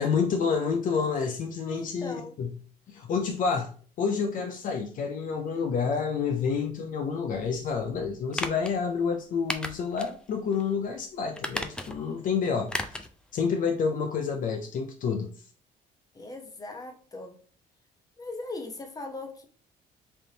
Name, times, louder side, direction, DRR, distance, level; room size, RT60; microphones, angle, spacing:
voice 1, 0.0-2.5 2.9-3.7 4.0-13.0 13.3-15.3, left 5 dB, 55° left, 0.5 m, -29 dB
voice 2, 1.7-2.4 16.1-17.4 18.2-19.4, left 2 dB, 20° left, 0.8 m, -39 dB
sound 1, 8.3-8.7 9.5-10.1 10.5-10.6 11.3-12.1 12.7-13.1 13.4-13.5, left 1 dB, 5° left, 0.4 m, -34 dB
3.5 x 2.6 x 3.8 m
cardioid pair, 110°, 17 cm